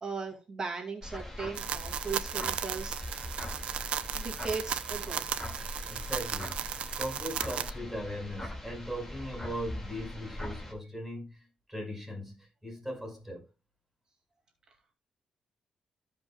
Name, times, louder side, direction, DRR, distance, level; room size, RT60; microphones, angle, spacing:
voice 1, 0.0-3.0 4.1-5.2 6.7-7.0 14.7-14.8, right 4 dB, 40° right, 2.3 m, -38 dB
sound 1, 1.0-10.7, left 1 dB, 15° left, 2.3 m, -41 dB
sound 2, 1.6-7.7, right 9 dB, 80° right, 0.6 m, -36 dB
voice 2, 5.9-13.5, equal, 5° right, 5.4 m, -39 dB
15.0 x 5.3 x 2.3 m
cardioid pair, 95°, 2 cm